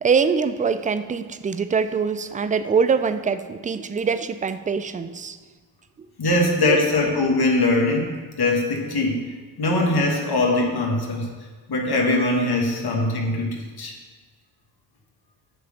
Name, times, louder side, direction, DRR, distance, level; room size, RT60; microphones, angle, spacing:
voice 1, 0.0-5.4 6.4-6.8, right 5 dB, 20° right, 11 dB, 0.3 m, -23 dB
voice 2, 6.2-8.1 8.4-9.2 9.6-11.2 11.7-13.5 13.8-13.9, left 2 dB, 50° left, 0 dB, 1.8 m, -21 dB
9.4 x 3.4 x 6.5 m, 1.4 s
supercardioid pair, 65°, 50 cm